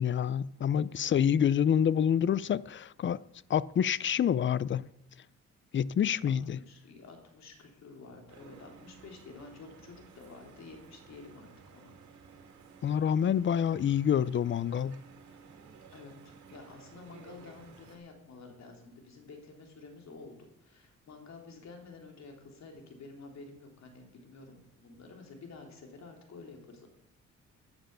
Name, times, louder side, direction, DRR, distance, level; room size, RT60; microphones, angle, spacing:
voice 1, 0.0-3.2 3.5-4.9 5.7-6.6 12.8-15.0, left 8 dB, 40° left, 0.5 m, -27 dB
voice 2, 6.3-11.9 15.9-26.9, left 3 dB, 65° left, 3.5 m, -50 dB
sound 1, 8.3-18.0, right 6 dB, 70° right, 2.7 m, -55 dB
11.5 x 11.0 x 6.8 m
cardioid pair, 90°, 30 cm